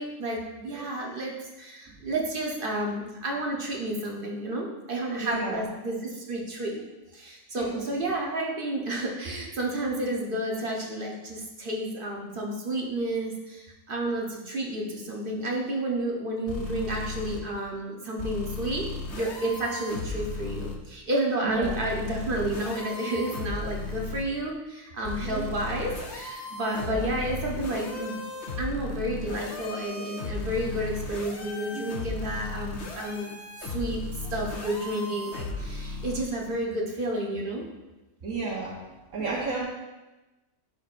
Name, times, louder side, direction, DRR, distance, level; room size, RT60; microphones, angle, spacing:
voice 1, 0.0-6.8 7.1-18.9 19.1-28.2 28.6-34.0 34.3-37.6, right 1 dB, 45° right, -1 dB, 1.1 m, -31 dB
voice 2, 5.2-5.6 7.5-7.9 21.4-21.8 25.1-25.4 26.7-27.1 31.7-31.8 38.2-38.7 39.1-39.6, right 4 dB, 85° right, -6 dB, 1.5 m, -33 dB
sound 1, 16.5-17.4 18.2-20.8 21.6-24.2 25.0-36.2, left 3 dB, 60° left, 1.2 m, -36 dB
11.0 x 4.6 x 2.5 m, 1.1 s
omnidirectional pair, 1.4 m